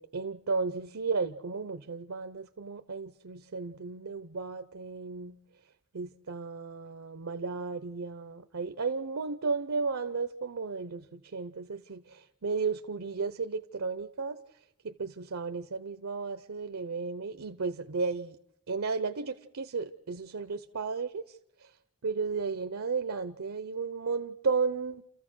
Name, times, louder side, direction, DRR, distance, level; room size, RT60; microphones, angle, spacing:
voice 1, 0.0-5.4 5.9-14.4 14.8-18.4 18.7-21.7 22.0-25.0, right 4 dB, 65° right, 0.7 m, -34 dB
29.5 x 14.5 x 6.2 m
head